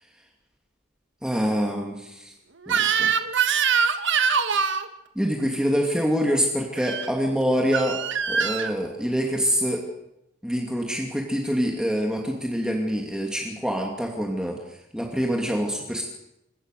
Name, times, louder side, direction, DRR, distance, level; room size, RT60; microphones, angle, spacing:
voice 1, 1.2-2.3 2.7-3.1 5.2-9.8 10.4-14.6 14.9-16.0, equal, 5° right, 1 dB, 2.6 m, -25 dB
Crying sobbing / Screech, 2.7-4.9 6.8-7.1 7.7-8.7, right 6 dB, 65° right, 1.5 m, -23 dB
28.0 x 17.0 x 6.7 m, 0.83 s
head